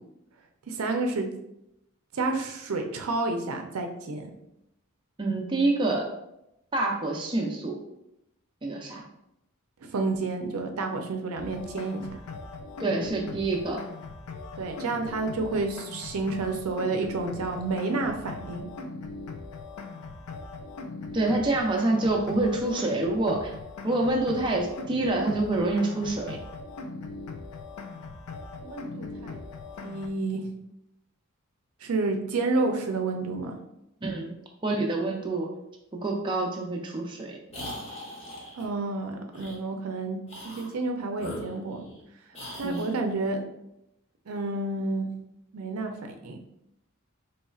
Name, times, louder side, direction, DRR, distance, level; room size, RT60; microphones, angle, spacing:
voice 1, 0.7-1.3 2.1-4.3 9.9-12.0 14.6-18.7 28.6-29.4 29.8-30.4 31.8-33.6 38.6-40.2 40.6-41.8 42.5-43.6 44.3-45.1 45.5-45.9 46.2-46.4, right 3 dB, 80° right, 4 dB, 0.5 m, -30 dB
voice 2, 5.2-6.1 6.7-7.8 8.6-9.0 12.8-13.8 21.1-23.5 23.8-26.4 34.0-34.3 34.6-35.5 35.9-37.4 42.6-42.9, right 2 dB, 20° right, -1 dB, 0.4 m, -27 dB
sound 1, 11.4-30.1, left 3 dB, 85° left, 0.4 m, -40 dB
sound 2, 37.5-38.7 39.3-39.6 40.2-40.7 41.1-42.0 42.3-42.9, equal, 30° left, 0.9 m, -40 dB
4.2 x 3.1 x 2.3 m, 0.83 s
head